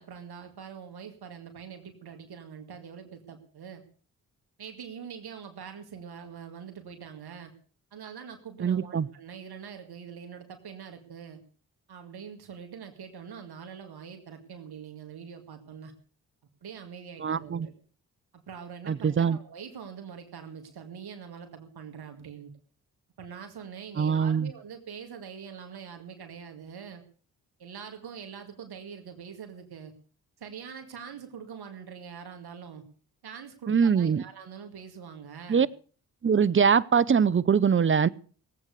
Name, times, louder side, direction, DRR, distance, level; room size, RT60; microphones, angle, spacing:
voice 1, 0.0-3.8 4.6-7.5 7.9-11.4 11.9-15.9 16.6-17.7 18.3-22.5 23.2-27.0 27.6-29.9 30.4-32.8 33.2-35.7, right 7 dB, 60° right, 2.2 m, -44 dB
voice 2, 8.6-9.1 17.2-17.7 18.9-19.4 24.0-24.5 33.7-34.2 35.5-35.7 36.2-38.1, right 6 dB, 30° right, 0.8 m, -23 dB
18.5 x 8.3 x 6.6 m
hypercardioid pair, 40°, 42 cm